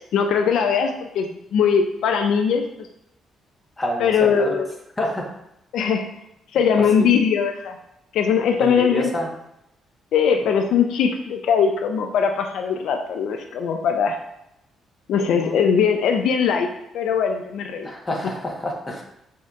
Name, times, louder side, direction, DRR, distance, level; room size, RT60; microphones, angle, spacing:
voice 1, 0.1-2.6 4.0-4.7 5.7-6.1 6.5-7.8 8.1-9.1 10.1-14.2 15.1-16.7 16.9-17.9, left 6 dB, 75° left, 5 dB, 0.3 m, -20 dB
voice 2, 3.8-4.1 4.4-4.5 5.0-5.3 6.9-7.2 8.6-9.3 10.4-10.5 15.3-15.7 17.8-19.0, left 1 dB, 25° left, 0 dB, 1.0 m, -27 dB
6.3 x 2.8 x 2.4 m, 0.82 s
cardioid pair, 90°, 0 cm